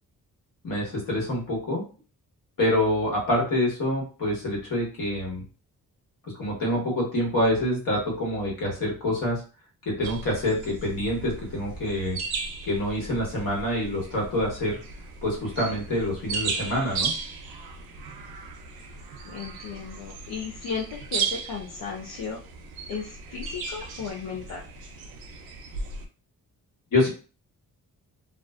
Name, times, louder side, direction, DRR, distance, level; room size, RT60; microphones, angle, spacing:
voice 1, 0.6-1.8 2.6-5.4 6.2-9.4 9.8-12.2 12.6-14.8 15.2-17.1 26.9-27.1, left 1 dB, 65° left, -2 dB, 1.3 m, -26 dB
sound 1, 10.0-26.1, right 5 dB, 90° right, 0.5 m, -36 dB
voice 2, 19.2-22.4 22.9-24.6, left 6 dB, 85° left, -2 dB, 0.6 m, -35 dB
2.3 x 2.2 x 2.3 m, 0.36 s
cardioid pair, 70°, 36 cm